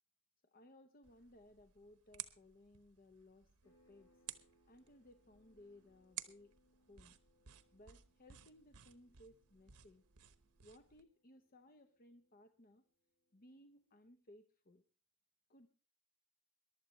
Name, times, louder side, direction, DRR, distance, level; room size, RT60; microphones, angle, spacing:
voice 1, 0.4-4.2 4.7-7.2 7.7-10.0 10.6-12.8 13.3-14.8 15.5-15.7, left 1 dB, 40° left, 7 dB, 0.8 m, -62 dB
sound 1, 1.0-11.0, right 12 dB, 90° right, 1.0 m, -56 dB
sound 2, 3.6-13.9, equal, 80° left, 4.5 m, -77 dB
22.5 x 11.5 x 3.1 m, 0.36 s
head